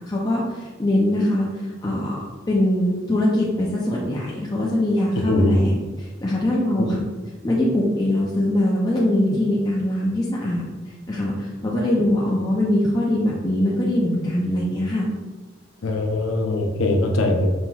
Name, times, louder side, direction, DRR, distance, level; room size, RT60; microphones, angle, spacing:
voice 1, 0.0-2.2 2.5-5.7 6.2-7.0 7.4-10.6 11.1-15.1, left 1 dB, 20° left, -5 dB, 0.4 m, -22 dB
voice 2, 5.2-5.6 6.8-6.9 15.8-17.5, left 1 dB, 85° left, 2 dB, 0.5 m, -21 dB
5.4 x 2.9 x 2.3 m, 1.3 s
head